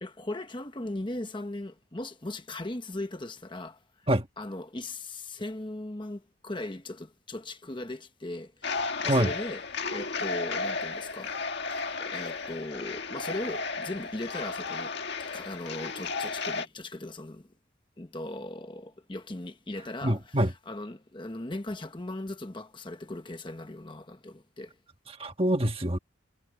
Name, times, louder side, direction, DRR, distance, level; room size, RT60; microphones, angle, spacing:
voice 1, 0.0-4.1 4.4-9.6 9.9-11.4 12.0-17.5 18.0-24.8, left 2 dB, 25° left, 1.0 m, -38 dB
sound 1, 8.6-16.7, left 4 dB, 55° left, 1.8 m, -34 dB
voice 2, 20.0-20.5 25.2-26.0, right 1 dB, 25° right, 1.5 m, -25 dB
head